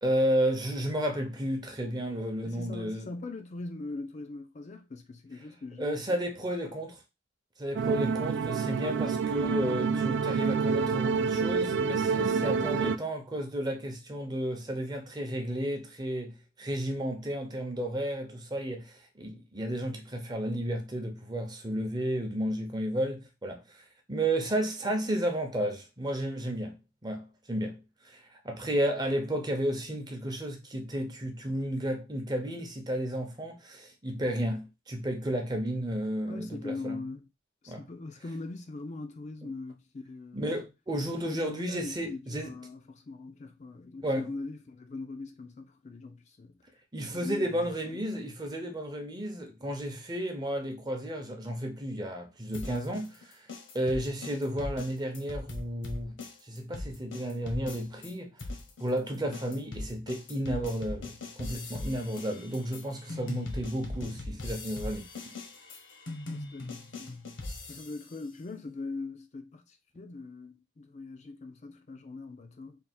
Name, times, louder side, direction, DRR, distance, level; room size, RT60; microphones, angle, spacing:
voice 1, 0.0-3.1 5.8-7.0 7.6-26.8 27.0-37.0 37.7-37.8 39.4-39.5 40.3-42.5 44.0-44.3 46.9-53.5 53.7-56.2 56.4-58.3 58.8-65.3, right 1 dB, 20° right, 0.7 m, -32 dB
voice 2, 2.4-6.2 36.3-37.2 37.6-40.6 41.3-46.6 47.1-47.7 66.3-67.2 67.7-72.8, left 3 dB, 40° left, 0.4 m, -41 dB
sound 1, 7.8-13.0, right 5 dB, 70° right, 0.4 m, -28 dB
sound 2, 52.5-58.1 58.4-68.1, left 2 dB, 70° left, 0.9 m, -40 dB
3.4 x 2.3 x 4.3 m
head